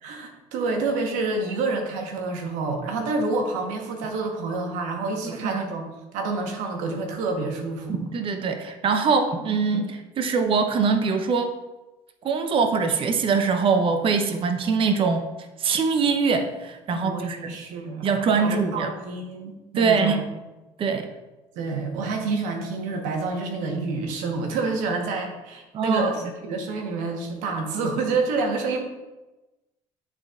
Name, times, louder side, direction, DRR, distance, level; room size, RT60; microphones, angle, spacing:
voice 1, 0.0-5.8 6.1-8.0 16.9-18.1 18.4-20.1 21.5-26.2 26.4-28.8, right 3 dB, 75° right, 4 dB, 1.1 m, -28 dB
voice 2, 5.2-5.6 7.9-11.5 12.2-15.2 15.6-17.5 18.0-18.9 19.7-20.2 20.8-21.1 25.7-26.1, right 5 dB, 45° right, 7 dB, 0.7 m, -23 dB
9.7 x 4.1 x 2.4 m, 1.1 s
supercardioid pair, 85°, 13 cm